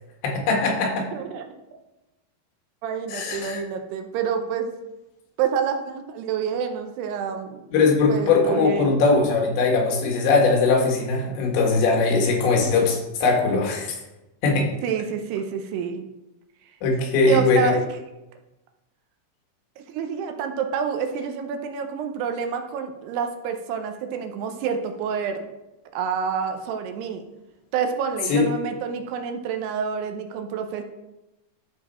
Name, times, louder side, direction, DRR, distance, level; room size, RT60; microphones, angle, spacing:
voice 1, 0.2-1.1 3.1-3.6 7.7-14.0 14.4-14.7 16.8-17.8 28.3-28.5, left 4 dB, 90° left, 0 dB, 3.9 m, -20 dB
voice 2, 1.1-1.5 2.8-4.7 5.4-9.0 14.8-16.0 17.3-17.8 19.8-25.4 25.9-27.3 27.7-30.8, right 6 dB, 80° right, 5 dB, 2.7 m, -28 dB
13.0 x 4.6 x 4.2 m, 0.98 s
omnidirectional pair, 5.0 m